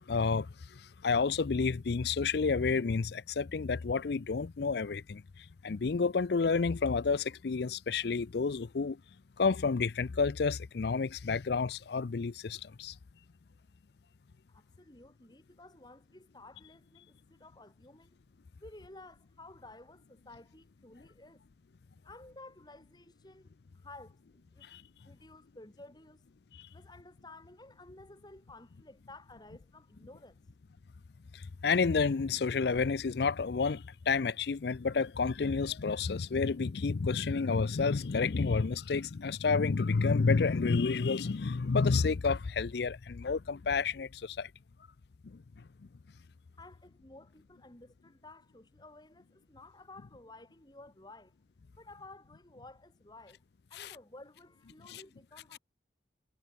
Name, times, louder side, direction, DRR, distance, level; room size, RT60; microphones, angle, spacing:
voice 1, 0.1-0.5 1.0-5.2 5.6-9.0 9.4-12.9 31.6-44.5 53.8-53.9 54.9-55.0, left 4 dB, 60° left, 0.5 m, -30 dB
voice 2, 14.5-18.2 18.6-21.4 22.0-24.7 25.0-26.2 26.7-30.4 46.6-51.3 51.8-53.4 53.7-55.6, left 2 dB, 20° left, 3.0 m, -54 dB
head